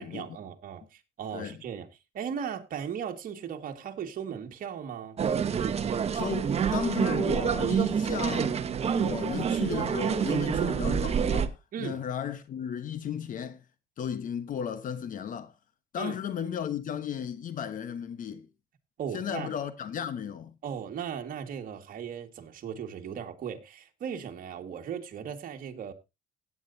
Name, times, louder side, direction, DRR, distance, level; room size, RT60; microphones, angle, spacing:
voice 1, 0.0-1.9 2.1-5.2 11.7-12.0 16.0-16.2 19.0-19.5 20.6-25.9, right 8 dB, 55° right, 2.0 m, -37 dB
sound 1, 5.2-11.5, right 7 dB, 40° right, 1.1 m, -27 dB
voice 2, 6.1-8.6 8.9-13.6 14.0-15.5 15.9-18.5 19.1-20.5, left 8 dB, 50° left, 1.2 m, -35 dB
16.5 x 9.3 x 2.8 m
cardioid pair, 110°, 17 cm